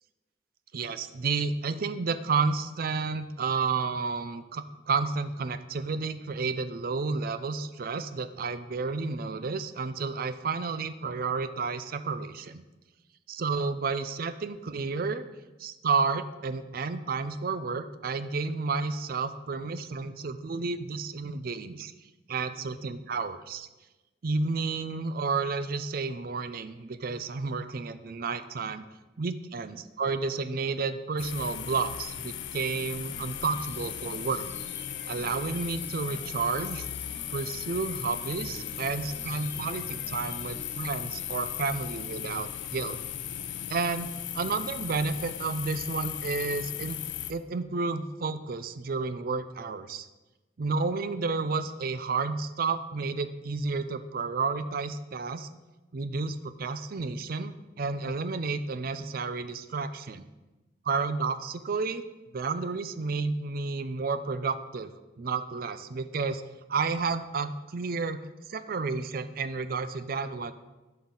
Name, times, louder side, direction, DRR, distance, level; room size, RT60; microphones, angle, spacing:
voice 1, 0.7-12.6 13.3-15.2 15.6-21.9 22.3-23.7 24.2-28.9 29.2-34.5 35.1-36.9 37.3-43.0 43.7-44.1 44.3-47.0 47.3-50.1 50.6-55.5 55.9-60.2 60.9-62.0 62.3-64.9 65.2-66.4 66.7-68.2 68.5-70.5, right 4 dB, 55° right, 12 dB, 0.5 m, -31 dB
sound 1, 31.2-47.3, left 10 dB, 85° left, 0.5 m, -37 dB
sound 2, 33.0-41.0, left 1 dB, 10° left, 1.3 m, -49 dB
11.5 x 5.7 x 3.9 m, 1.1 s
head